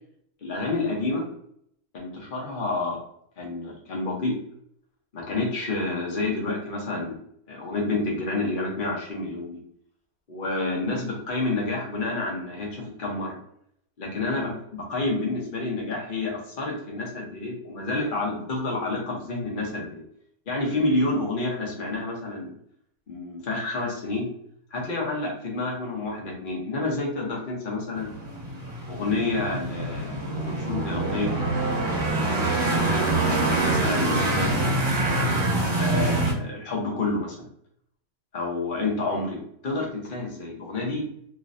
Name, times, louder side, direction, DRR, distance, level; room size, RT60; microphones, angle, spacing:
voice 1, 0.4-1.3 1.9-3.0 3.4-4.4 5.1-7.2 7.5-9.6 10.3-13.3 14.0-14.5 14.9-20.0 20.5-22.5 23.1-24.3 24.7-28.1 28.9-31.3 32.9-34.6 35.8-37.5 38.3-41.0, left 2 dB, 40° left, -2 dB, 0.9 m, -29 dB
sound 1, 28.0-36.3, right 2 dB, 45° right, 1.4 m, -25 dB
3.1 x 3.1 x 2.6 m, 0.71 s
omnidirectional pair, 1.6 m